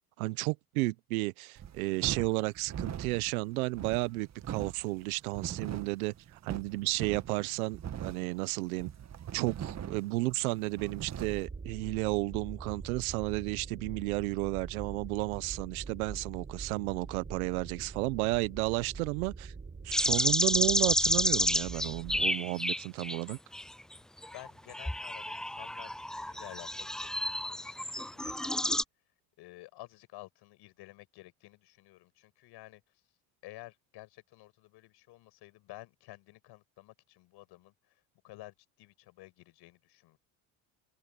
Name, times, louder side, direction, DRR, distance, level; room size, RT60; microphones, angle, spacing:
voice 1, 0.2-8.9 9.3-19.5 19.8-23.4, right 22 dB, 85° right, 1.0 m, -33 dB
sound 1, 1.6-11.5, right 9 dB, 40° right, 1.8 m, -41 dB
sound 2, 11.2-22.3, right 4 dB, 25° right, 5.2 m, -44 dB
sound 3, 19.9-23.6 24.2-28.8, left 1 dB, ahead, 0.3 m, -30 dB
voice 2, 24.2-28.8 29.4-32.8 33.4-40.2, left 18 dB, 70° left, 7.7 m, -52 dB
open air
supercardioid pair, 75°, 42 cm